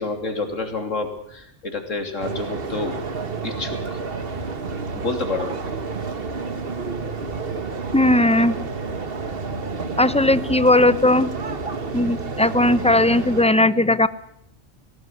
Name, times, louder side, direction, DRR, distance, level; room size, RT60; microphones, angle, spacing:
voice 1, 0.0-3.0 3.4-4.0 4.9-5.6 8.8-9.0, left 3 dB, 80° left, 5 dB, 3.4 m, -29 dB
sound 1, 2.2-13.4, right 4 dB, 50° right, 1.6 m, -30 dB
voice 2, 7.9-8.6 10.0-11.3 11.9-14.1, left 1 dB, 5° left, 15 dB, 0.6 m, -17 dB
19.0 x 17.5 x 9.8 m, 0.71 s
omnidirectional pair, 1.3 m